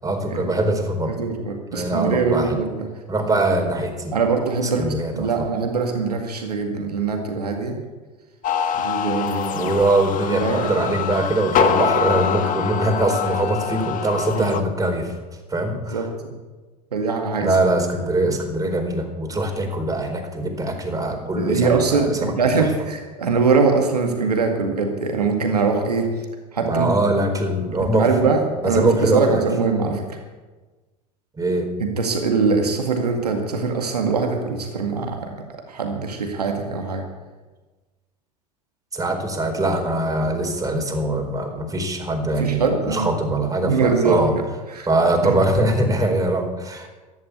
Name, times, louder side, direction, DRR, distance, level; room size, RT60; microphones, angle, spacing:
voice 1, 0.0-1.1 1.7-2.6 3.1-4.2 4.8-5.5 9.5-15.1 15.5-16.0 17.4-22.3 22.6-22.7 26.6-28.1 28.6-29.4 31.4-31.7 38.9-44.3 44.9-46.9, right 2 dB, 15° right, 3 dB, 4.2 m, -22 dB
voice 2, 1.1-2.9 4.1-7.8 8.7-9.8 10.3-11.0 14.3-14.6 15.9-16.1 16.3-16.4 16.9-17.5 21.3-26.1 26.5-26.9 27.8-30.2 31.8-35.3 35.7-37.0 42.4-43.1 43.6-44.9 45.2-45.3, right 4 dB, 90° right, 3 dB, 2.1 m, -22 dB
sound 1, 8.4-14.6, left 7 dB, 40° left, 1.6 m, -24 dB
15.0 x 11.0 x 8.3 m, 1.3 s
hypercardioid pair, 80°, 20 cm